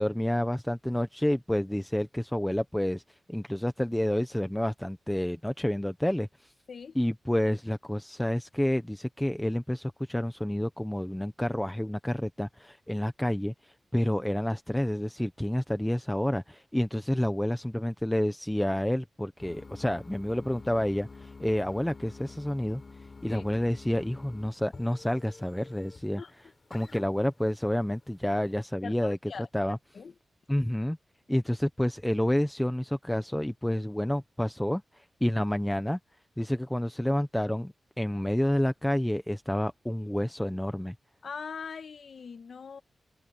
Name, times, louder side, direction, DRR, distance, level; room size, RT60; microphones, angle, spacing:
voice 1, 0.0-3.0 3.3-6.5 6.9-22.8 23.2-26.2 26.7-29.2 29.5-29.8 30.5-31.0 31.3-36.0 36.4-40.9, left 1 dB, 5° left, 0.8 m, -29 dB
sound 1, 19.4-28.6, left 4 dB, 35° left, 4.2 m, -48 dB
voice 2, 28.8-29.5 29.9-30.1 41.2-42.8, left 6 dB, 60° left, 1.4 m, -41 dB
wide cardioid pair, 130°, 0 cm